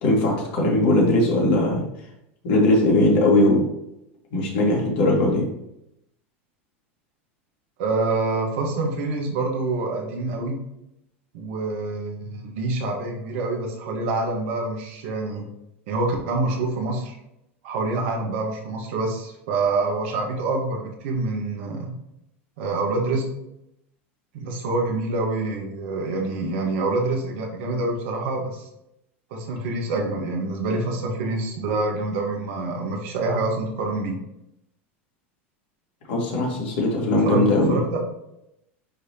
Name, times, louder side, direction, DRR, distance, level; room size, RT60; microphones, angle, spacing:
voice 1, 0.0-1.8 2.4-3.7 4.3-5.4 36.1-37.8, left 1 dB, 65° left, -2 dB, 2.4 m, -19 dB
voice 2, 7.8-10.6 11.3-15.4 15.9-17.2 17.6-21.9 22.6-23.2 24.3-28.7 29.3-34.2 37.2-37.4 37.7-38.0, right 3 dB, 65° right, 1 dB, 1.6 m, -26 dB
9.2 x 3.4 x 3.0 m, 0.83 s
hypercardioid pair, 100°, 7 cm